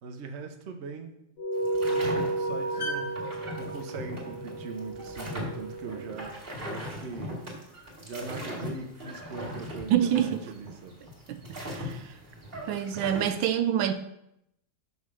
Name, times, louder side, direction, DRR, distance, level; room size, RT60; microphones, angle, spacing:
voice 1, 0.0-1.2 1.8-3.2 3.6-7.4 8.0-11.0 12.2-12.4, right 4 dB, 50° right, 0.9 m, -41 dB
sound 1, 1.4-6.2, right 2 dB, 75° left, 2.0 m, -32 dB
sound 2, 1.6-13.3, equal, 30° right, 2.1 m, -39 dB
voice 2, 9.9-10.4 11.3-12.1 12.7-13.9, right 10 dB, 85° right, 1.4 m, -27 dB
5.6 x 5.4 x 6.2 m
omnidirectional pair, 2.0 m